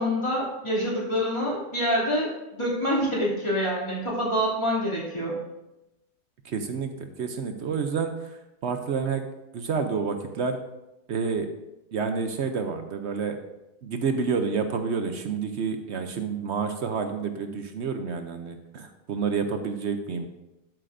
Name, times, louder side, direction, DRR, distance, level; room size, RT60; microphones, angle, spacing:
voice 1, 0.0-5.3, equal, 20° left, -5 dB, 2.7 m, -26 dB
voice 2, 6.4-6.9 7.2-8.1 8.6-9.2 9.5-10.6 11.1-11.5 11.9-13.4 13.8-20.3, right 5 dB, 60° right, 7 dB, 0.8 m, -29 dB
12.5 x 7.6 x 2.6 m, 0.94 s
omnidirectional pair, 1.6 m